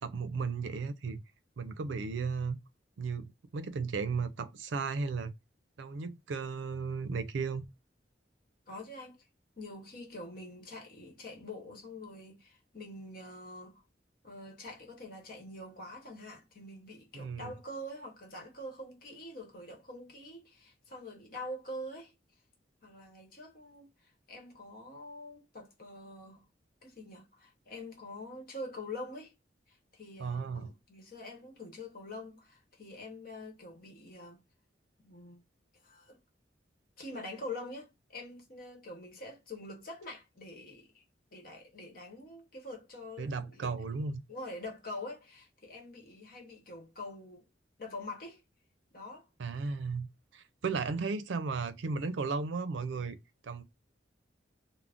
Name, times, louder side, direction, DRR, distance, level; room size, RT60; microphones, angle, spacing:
voice 1, 0.0-1.2 1.6-2.6 3.0-5.3 5.8-7.7 17.1-17.5 30.2-30.7 43.2-44.2 49.4-50.1 50.3-53.2 53.4-53.6, right 4 dB, 90° right, 0.4 m, -35 dB
voice 2, 8.7-9.3 9.6-13.8 14.2-22.1 22.8-26.5 26.8-29.3 29.7-34.4 35.0-35.4 35.8-36.2 37.0-41.0 41.3-43.7 44.3-47.4 47.8-48.4 48.9-49.3, left 1 dB, 50° left, 1.0 m, -45 dB
2.5 x 2.0 x 3.3 m
head